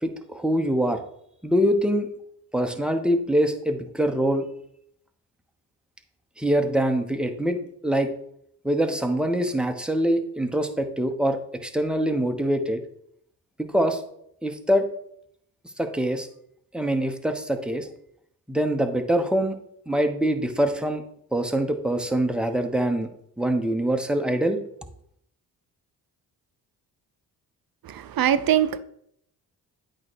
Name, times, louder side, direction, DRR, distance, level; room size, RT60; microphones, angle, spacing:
voice 1, 0.0-1.0 1.4-2.1 2.5-4.5 6.4-7.6 7.8-8.1 8.6-12.8 13.6-14.0 14.4-14.8 15.8-16.3 16.7-17.9 18.5-19.5 19.9-21.0 21.3-23.1 23.4-24.6, right 1 dB, ahead, 1.0 m, -24 dB
voice 2, 27.8-28.8, right 10 dB, 60° right, 0.7 m, -22 dB
8.6 x 3.3 x 6.2 m
cardioid pair, 65°, 41 cm